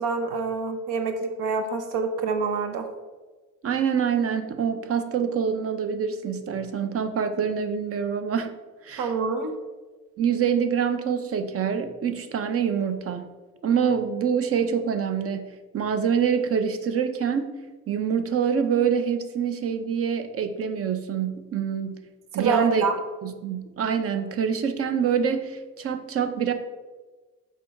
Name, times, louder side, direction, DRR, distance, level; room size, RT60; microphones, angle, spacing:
voice 1, 0.0-2.9 9.0-9.5 22.3-23.0, right 4 dB, 85° right, 6 dB, 1.0 m, -26 dB
voice 2, 3.6-8.5 8.8-9.1 10.2-13.3 13.6-17.5 17.9-22.1 22.3-22.9 23.2-26.5, right 7 dB, 45° right, 9 dB, 0.7 m, -25 dB
6.8 x 4.8 x 4.3 m, 1.3 s
cardioid pair, 150°, 31 cm